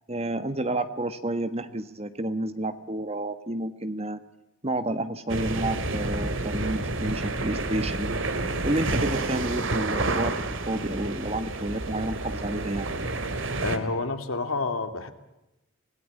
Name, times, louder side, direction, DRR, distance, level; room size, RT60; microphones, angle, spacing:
voice 1, 0.1-4.2 4.6-8.2 8.6-10.3 10.7-12.9, right 1 dB, 30° right, 11 dB, 1.4 m, -30 dB
sound 1, 5.3-13.8, right 2 dB, 65° right, 2.3 m, -29 dB
voice 2, 13.6-15.1, left 3 dB, 75° left, 8 dB, 2.6 m, -29 dB
25.5 x 18.5 x 9.7 m, 0.95 s
head